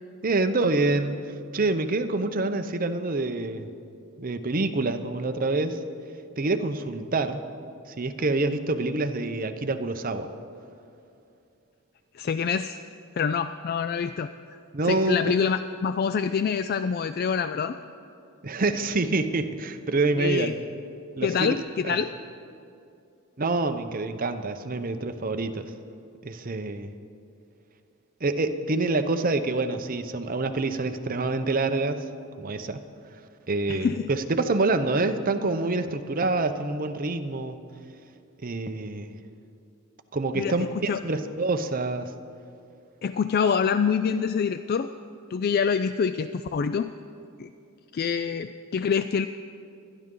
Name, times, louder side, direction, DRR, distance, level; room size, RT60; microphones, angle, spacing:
voice 1, 0.2-1.2 1.5-3.7 4.2-5.8 6.4-7.4 8.0-10.3 14.7-15.3 18.4-20.5 21.2-21.5 21.8-22.0 23.4-25.7 26.2-26.9 28.2-32.0 32.4-32.8 33.5-37.6 38.4-39.1 40.1-42.1, right 2 dB, 40° right, 8 dB, 0.7 m, -26 dB
voice 2, 12.1-12.8 13.1-14.3 14.8-17.8 20.2-20.5 21.2-22.1 33.7-34.1 40.3-40.6 40.9-41.0 43.0-44.9 45.3-46.9 47.4-47.5 47.9-49.3, left 6 dB, 45° left, 11 dB, 0.3 m, -26 dB
24.5 x 11.0 x 3.8 m, 2.6 s
head